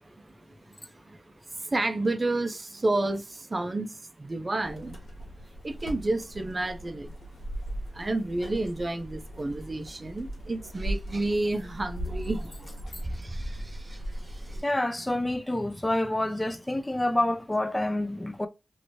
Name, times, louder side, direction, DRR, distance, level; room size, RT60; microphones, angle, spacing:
voice 1, 0.0-5.1 5.6-7.2 7.9-14.6, right 2 dB, 40° right, 0.5 m, -31 dB
sound 1, 4.6-14.6, right 1 dB, 80° left, 1.4 m, -38 dB
voice 2, 14.6-18.5, left 1 dB, 15° left, 0.3 m, -28 dB
2.9 x 2.6 x 2.7 m
cardioid pair, 60°, 0 cm